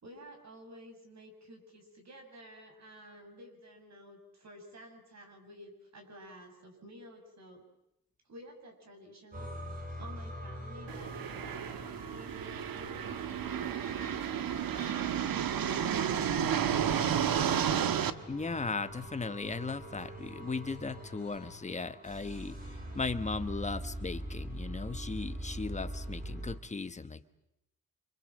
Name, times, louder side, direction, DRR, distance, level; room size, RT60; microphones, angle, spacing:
voice 1, 0.0-7.6 8.2-9.5 10.0-15.4, equal, 50° right, 4 dB, 7.4 m, -52 dB
sound 1, 9.3-26.6, right 1 dB, 25° right, 4.8 m, -44 dB
sound 2, 10.9-18.1, right 8 dB, 80° right, 1.5 m, -32 dB
voice 2, 18.3-27.3, left 4 dB, 20° left, 11 dB, 1.2 m, -37 dB
28.5 x 27.0 x 7.6 m, 0.83 s
wide cardioid pair, 175°, 35 cm